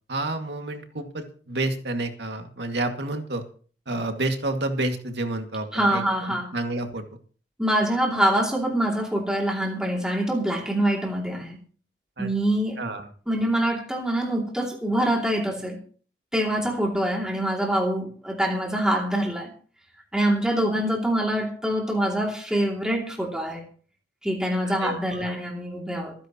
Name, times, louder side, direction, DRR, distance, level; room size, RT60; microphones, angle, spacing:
voice 1, 0.1-3.4 3.9-6.0 6.3-7.0 12.2-12.3 12.8-13.1 24.6-25.3, right 2 dB, 70° right, 4 dB, 2.3 m, -29 dB
voice 2, 5.7-6.5 7.6-11.6 12.2-12.8 13.3-15.8 16.3-19.5 20.1-23.6 24.2-26.1, right 1 dB, 5° right, -1 dB, 2.7 m, -25 dB
26.0 x 10.0 x 3.1 m, 0.43 s
head